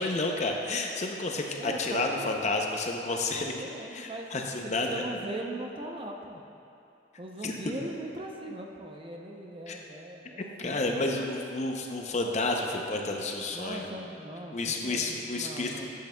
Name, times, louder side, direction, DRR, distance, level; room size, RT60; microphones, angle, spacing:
voice 1, 0.0-3.5 3.9-5.0 7.4-7.6 9.7-9.8 10.6-13.9 14.5-15.9, left 2 dB, 40° left, 2 dB, 0.6 m, -30 dB
voice 2, 1.6-2.4 3.3-6.4 7.2-10.9 13.5-15.9, right 1 dB, 30° right, 1 dB, 0.6 m, -40 dB
10.5 x 8.4 x 2.2 m, 2.6 s
head